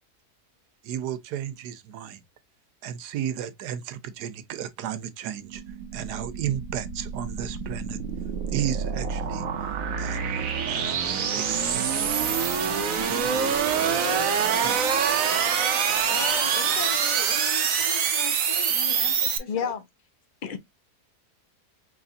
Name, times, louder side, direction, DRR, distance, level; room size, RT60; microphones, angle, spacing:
voice 1, 0.8-2.2 2.8-8.0 8.5-9.5 10.0-10.2 10.7-12.4 13.1-14.1 14.6-15.0, right 10 dB, 90° right, 1.3 m, -34 dB
sound 1, 5.4-19.4, right 7 dB, 65° right, 1.1 m, -26 dB
voice 2, 16.1-19.7, left 4 dB, 90° left, 2.1 m, -37 dB
voice 3, 19.5-19.8 20.4-20.6, left 7 dB, 60° left, 0.5 m, -29 dB
5.0 x 3.1 x 2.6 m
omnidirectional pair, 1.7 m